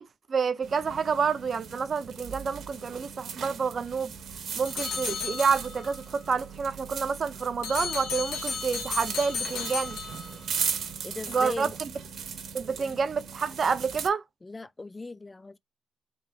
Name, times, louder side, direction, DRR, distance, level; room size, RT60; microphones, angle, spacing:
voice 1, 0.3-4.1 4.6-10.0 11.3-11.9 12.5-14.2, right 5 dB, 45° right, 0.5 m, -28 dB
sound 1, 0.6-14.1, right 7 dB, 70° right, 1.1 m, -38 dB
sound 2, 4.6-6.0 7.6-10.6, left 6 dB, 90° left, 0.8 m, -34 dB
voice 2, 11.0-11.7 12.7-13.0 14.4-15.6, left 3 dB, 20° left, 0.3 m, -39 dB
3.6 x 2.4 x 4.2 m
cardioid pair, 105°, 0 cm